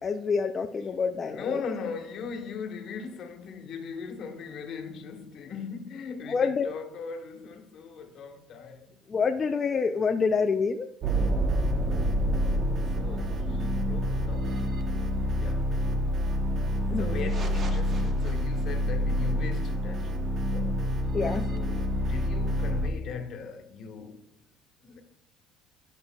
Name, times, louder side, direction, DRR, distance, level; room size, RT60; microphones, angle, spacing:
voice 1, 0.0-1.6 6.3-6.7 9.1-10.9 16.9-17.3 21.1-21.4, left 5 dB, 30° left, 0.5 m, -27 dB
voice 2, 1.2-8.9 12.9-14.6 15.3-15.9 17.0-20.8 21.5-24.3 24.8-25.0, left 5 dB, 55° left, 1.4 m, -39 dB
sound 1, 11.0-22.9, equal, 40° right, 1.0 m, -27 dB
12.0 x 6.8 x 2.3 m
cardioid pair, 120°, 0 cm